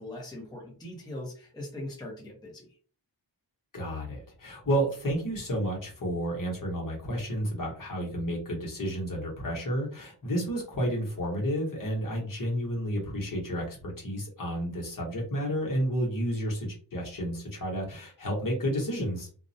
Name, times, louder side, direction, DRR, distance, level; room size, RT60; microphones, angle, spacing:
voice 1, 0.0-2.7, left 1 dB, 10° left, -2 dB, 0.6 m, -40 dB
voice 2, 3.7-19.3, equal, 50° left, -2 dB, 1.0 m, -31 dB
2.3 x 2.0 x 2.6 m, 0.41 s
wide cardioid pair, 150°, 43 cm